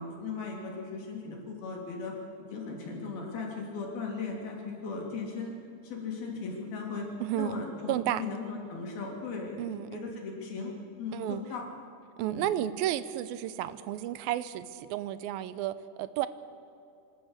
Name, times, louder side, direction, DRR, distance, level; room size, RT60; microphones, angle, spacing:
voice 1, 0.0-2.1 2.5-5.5 5.8-7.1 7.3-9.6 9.9-10.7 11.0-11.7 12.2-12.5, left 4 dB, 90° left, 0 dB, 5.2 m, -37 dB
voice 2, 7.2-8.2 9.6-10.1 11.1-11.4 12.2-16.3, right 12 dB, 85° right, 14 dB, 2.5 m, -32 dB
25.0 x 13.0 x 8.2 m, 2.7 s
omnidirectional pair, 4.2 m